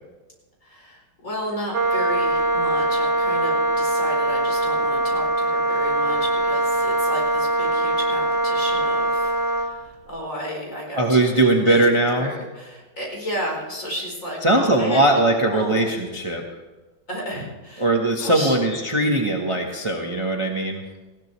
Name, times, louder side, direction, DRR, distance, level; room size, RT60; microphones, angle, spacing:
voice 1, 0.6-11.0 11.3-11.8 12.1-15.9 17.1-17.9 18.2-18.6, equal, 45° left, -1 dB, 4.8 m, -33 dB
Wind instrument woodwind instrument, 1.7-9.8, right 1 dB, 50° right, 1.2 m, -22 dB
voice 2, 11.0-12.3 14.4-16.4 17.8-20.8, right 2 dB, 20° right, 1 dB, 1.2 m, -20 dB
19.5 x 16.0 x 3.3 m, 1.2 s
omnidirectional pair, 1.9 m